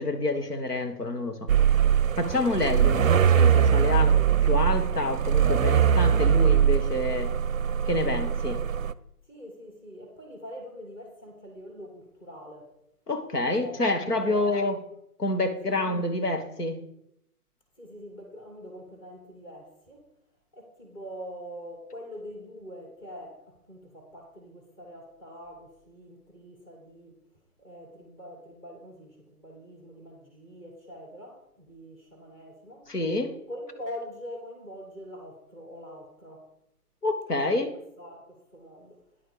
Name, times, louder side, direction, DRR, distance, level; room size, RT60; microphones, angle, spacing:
voice 1, 0.0-1.5 2.2-4.1 4.4-7.3 7.8-8.6 13.1-14.8 15.2-16.8 32.9-33.3 37.0-37.7, left 2 dB, 80° left, 1.7 m, -27 dB
sound 1, 1.5-8.9, right 8 dB, 60° right, 0.5 m, -22 dB
voice 2, 9.3-12.7 13.6-14.7 15.6-15.9 17.8-20.1 20.5-27.2 27.6-32.9 33.5-36.5 37.3-39.0, equal, 10° left, 1.3 m, -44 dB
9.8 x 7.6 x 5.1 m
figure-of-eight pair, 145°, 46 cm